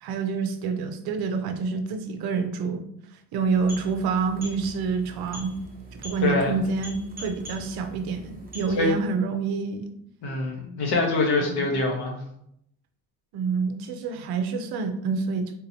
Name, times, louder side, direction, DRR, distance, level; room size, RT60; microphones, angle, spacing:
voice 1, 0.0-2.8 3.3-5.5 5.9-10.0 11.4-11.7 13.3-15.6, right 5 dB, 65° right, 7 dB, 0.6 m, -27 dB
sound 1, 3.3-9.1, equal, 20° right, 0.8 m, -43 dB
voice 2, 6.2-6.5 8.7-9.0 10.2-12.2, left 2 dB, 75° left, 0 dB, 1.1 m, -24 dB
3.7 x 2.8 x 2.7 m, 0.73 s
cardioid pair, 145°, 40 cm